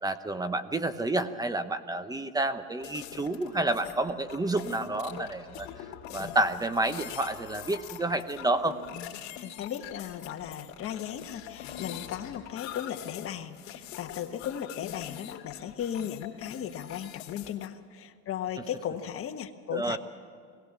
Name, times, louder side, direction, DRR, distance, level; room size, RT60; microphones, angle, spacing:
voice 1, 0.0-5.7 6.1-8.8 19.7-20.0, right 2 dB, 10° right, 11 dB, 0.9 m, -29 dB
sound 1, 2.8-17.7, left 10 dB, 60° left, 2.6 m, -43 dB
voice 2, 9.4-20.0, left 9 dB, 45° left, 6 dB, 1.5 m, -36 dB
21.0 x 17.5 x 7.3 m, 2.2 s
supercardioid pair, 115°, 32 cm